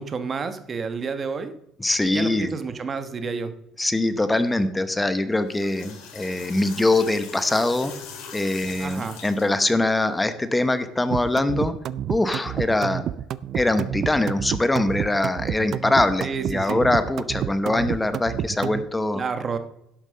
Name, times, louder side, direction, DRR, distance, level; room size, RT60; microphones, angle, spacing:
voice 1, 0.0-1.5 2.0-3.5 8.8-9.2 16.2-16.8 19.1-19.6, right 5 dB, 30° right, 9 dB, 1.1 m, -30 dB
voice 2, 1.8-2.5 3.8-7.9 8.3-11.7 12.1-13.0 13.5-19.2, left 2 dB, 10° left, 11 dB, 0.8 m, -23 dB
sound 1, 5.3-9.7, left 6 dB, 80° left, 4.4 m, -41 dB
sound 2, 11.1-18.8, right 10 dB, 45° right, 0.4 m, -29 dB
11.0 x 7.3 x 6.4 m, 0.84 s
cardioid pair, 135°, 0 cm